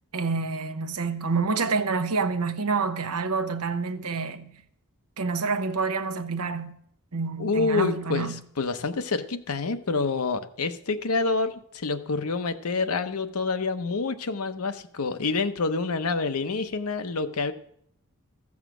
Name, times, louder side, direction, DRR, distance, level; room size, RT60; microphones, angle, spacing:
voice 1, 0.1-4.5 5.2-6.8 7.1-8.4, right 4 dB, 80° right, 0.9 m, -28 dB
voice 2, 7.4-17.5, left 4 dB, 70° left, 0.8 m, -27 dB
14.0 x 7.3 x 6.1 m
head